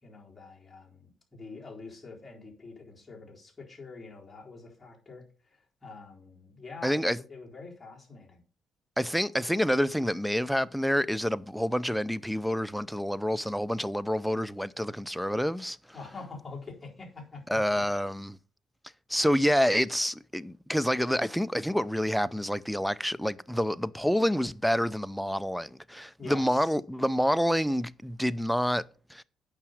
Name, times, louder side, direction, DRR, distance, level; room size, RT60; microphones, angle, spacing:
voice 1, 0.0-8.4 15.9-18.0 26.2-26.8, left 4 dB, 20° left, 3.9 m, -46 dB
voice 2, 6.8-7.2 9.0-15.8 17.5-18.4 19.1-29.2, equal, ahead, 0.5 m, -28 dB
9.0 x 6.0 x 6.5 m
cardioid pair, 90°, 0 cm